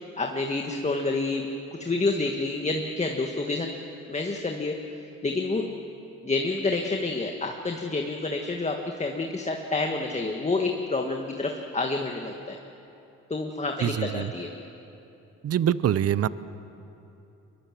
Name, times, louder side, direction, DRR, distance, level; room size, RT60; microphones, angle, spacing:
voice 1, 0.2-1.5 1.8-3.7 4.1-4.8 5.2-5.7 6.2-12.6 13.3-14.5, left 3 dB, 20° left, 3 dB, 1.7 m, -28 dB
voice 2, 13.8-14.3 15.4-16.3, right 10 dB, 55° right, 16 dB, 0.8 m, -24 dB
23.5 x 22.0 x 7.6 m, 2.8 s
cardioid pair, 90°, 30 cm